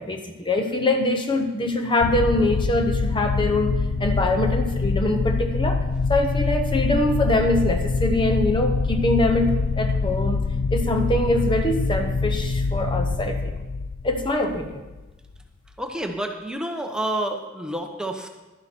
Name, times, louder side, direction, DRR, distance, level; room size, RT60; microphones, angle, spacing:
voice 1, 0.0-5.8 6.1-13.6 14.0-14.8, left 1 dB, 25° left, 4 dB, 0.8 m, -24 dB
sound 1, 2.0-15.0, left 4 dB, 85° left, 0.4 m, -25 dB
voice 2, 15.8-18.3, right 1 dB, 5° right, 3 dB, 0.8 m, -29 dB
12.0 x 10.5 x 4.4 m, 1.1 s
head